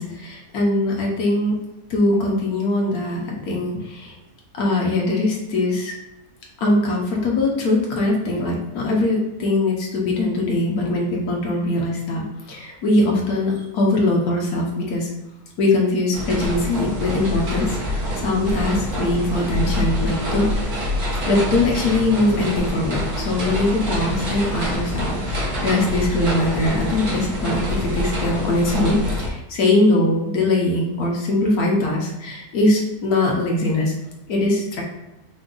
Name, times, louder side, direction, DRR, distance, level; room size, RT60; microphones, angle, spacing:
voice 1, 0.0-1.6 1.9-4.2 4.5-5.9 6.6-15.1 15.6-20.5 21.3-33.9 34.3-34.8, left 2 dB, 75° left, -2 dB, 1.4 m, -21 dB
sound 1, 16.1-29.3, left 1 dB, 75° right, 1.7 m, -26 dB
4.8 x 2.3 x 3.8 m, 0.98 s
omnidirectional pair, 1.6 m